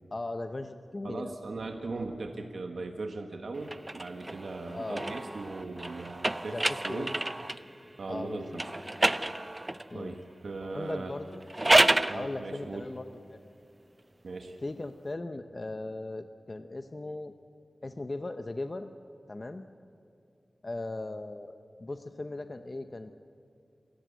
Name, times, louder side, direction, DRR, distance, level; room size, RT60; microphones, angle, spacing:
voice 1, 0.1-1.6 4.7-5.0 6.5-7.1 8.1-8.6 9.9-10.2 10.6-11.4 12.1-13.0 13.3-13.4 14.6-17.3 17.8-18.9 19.3-19.7 20.6-23.1, left 2 dB, 35° left, 8 dB, 0.7 m, -38 dB
voice 2, 1.0-6.6 6.8-7.2 8.0-8.7 9.9-11.1 12.1-12.8 14.2-14.6, right 3 dB, 75° right, 4 dB, 1.4 m, -38 dB
sound 1, 3.6-7.7 8.5-9.9 11.3-12.2, right 1 dB, 20° right, 0.6 m, -28 dB
28.0 x 14.0 x 8.2 m, 2.7 s
wide cardioid pair, 105°, 0 cm